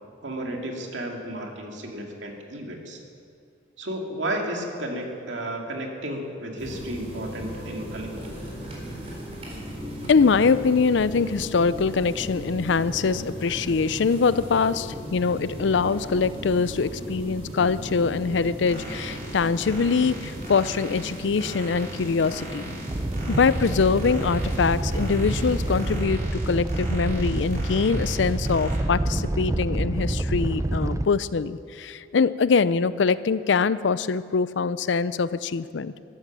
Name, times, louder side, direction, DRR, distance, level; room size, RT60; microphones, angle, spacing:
voice 1, 0.2-3.0 3.8-8.4, right 1 dB, 90° right, 1 dB, 2.3 m, -33 dB
sound 1, 6.6-26.0, equal, 35° right, 4.0 m, -36 dB
voice 2, 10.1-22.6 23.3-26.2 26.5-36.0, left 5 dB, 80° left, 16 dB, 0.5 m, -23 dB
sound 2, 18.6-28.8, right 2 dB, 55° right, 4.7 m, -41 dB
Animal, 22.9-31.0, right 1 dB, 15° right, 0.4 m, -27 dB
13.5 x 12.5 x 7.4 m, 2.4 s
head